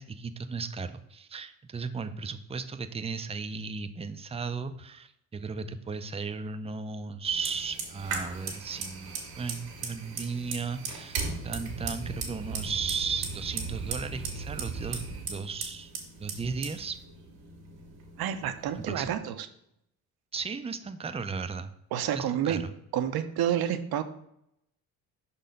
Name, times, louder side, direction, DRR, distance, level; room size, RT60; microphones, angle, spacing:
voice 1, 0.0-15.0 15.3-15.9 16.2-17.0 18.7-19.2 20.3-21.7 22.1-22.7, right 5 dB, 15° right, 9 dB, 0.5 m, -35 dB
Fire, 7.2-19.1, right 5 dB, 85° right, 1.7 m, -38 dB
voice 2, 18.2-19.5 21.9-22.6 22.9-24.0, right 10 dB, 60° right, 10 dB, 0.8 m, -29 dB
5.4 x 4.3 x 5.2 m, 0.76 s
supercardioid pair, 65°, 41 cm